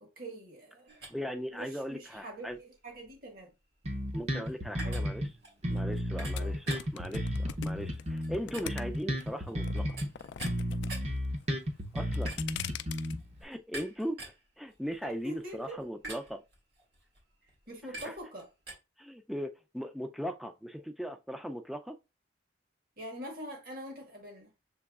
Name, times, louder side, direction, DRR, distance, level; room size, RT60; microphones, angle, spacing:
voice 1, 0.0-1.0 1.5-3.5 4.8-5.0 6.4-6.6 15.0-15.8 17.7-18.5 23.0-24.5, right 1 dB, 50° right, 1.4 m, -44 dB
sound 1, 0.9-18.7, right 2 dB, 75° right, 2.2 m, -48 dB
voice 2, 1.1-2.6 4.1-5.3 5.7-10.0 11.9-12.7 13.4-14.2 14.6-16.4 18.0-18.2 19.0-22.0, equal, ahead, 0.4 m, -38 dB
Bass guitar, 3.8-5.3 5.6-10.1 10.4-13.4, equal, 35° right, 0.8 m, -33 dB
sound 2, 6.4-9.2 9.6-10.9 11.2-11.6 12.0-13.1, left 10 dB, 75° left, 0.3 m, -41 dB
6.9 x 3.0 x 2.4 m
head